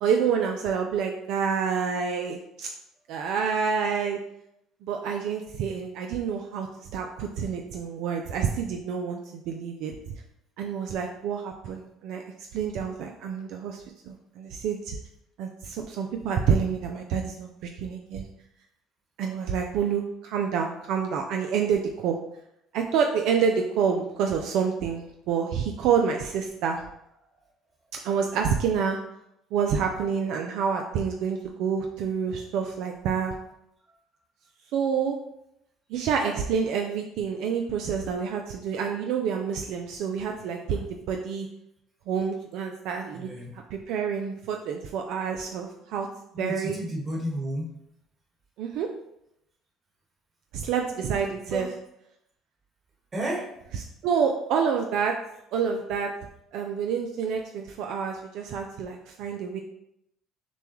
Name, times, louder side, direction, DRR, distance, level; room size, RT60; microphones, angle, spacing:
voice 1, 0.0-2.7 3.1-4.2 4.8-6.7 6.9-9.2 9.5-9.9 10.6-12.2 12.5-15.0 15.4-18.3 19.2-22.2 22.7-26.8 28.0-29.0 29.5-33.3 34.7-35.2 35.9-41.5 42.1-43.3 43.7-46.1 46.4-46.8 48.6-48.9 50.5-51.7 54.0-55.2 55.5-56.1 56.5-59.6, right 6 dB, 75° right, 3 dB, 0.4 m, -28 dB
voice 2, 43.1-43.6 46.3-47.7 51.5-51.6 53.1-53.5, equal, 35° right, -2 dB, 1.6 m, -32 dB
6.8 x 2.3 x 3.0 m, 0.80 s
supercardioid pair, 85°, 0 cm